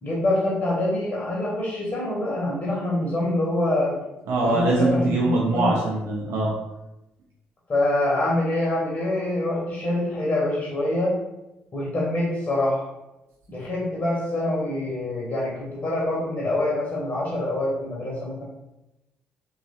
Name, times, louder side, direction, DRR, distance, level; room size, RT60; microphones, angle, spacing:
voice 1, 0.0-4.0 4.4-5.8 7.7-11.2 11.7-12.9 13.5-18.4, left 1 dB, 40° left, -5 dB, 0.9 m, -25 dB
voice 2, 4.3-6.5, right 2 dB, 55° right, -3 dB, 0.5 m, -22 dB
3.0 x 2.3 x 2.7 m, 0.94 s
figure-of-eight pair, 45°, 5 cm